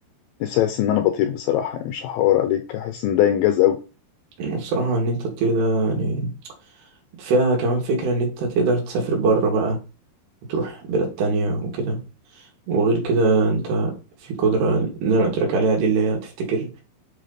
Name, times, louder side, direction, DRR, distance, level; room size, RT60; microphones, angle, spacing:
voice 1, 0.4-3.8, left 12 dB, 80° left, 8 dB, 2.1 m, -21 dB
voice 2, 4.4-6.3 7.2-9.8 10.5-12.0 12.4-13.9 14.2-16.7, right 3 dB, 75° right, 0 dB, 3.9 m, -22 dB
9.9 x 4.1 x 3.9 m, 0.34 s
omnidirectional pair, 4.7 m